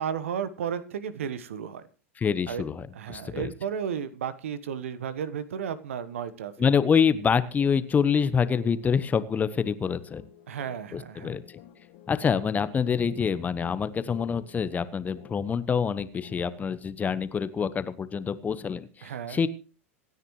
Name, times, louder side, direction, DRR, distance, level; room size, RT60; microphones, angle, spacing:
voice 1, 0.0-1.9 2.5-2.6 2.9-6.7 10.5-11.4 19.0-19.4, right 8 dB, 70° right, 14 dB, 1.3 m, -33 dB
voice 2, 2.2-3.5 6.6-10.2 10.9-11.4 12.1-19.5, left 6 dB, 20° left, 14 dB, 1.1 m, -26 dB
sound 1, 7.6-16.9, left 11 dB, 50° left, 1.9 m, -52 dB
26.5 x 9.7 x 3.1 m, 0.37 s
figure-of-eight pair, 90°, 7 cm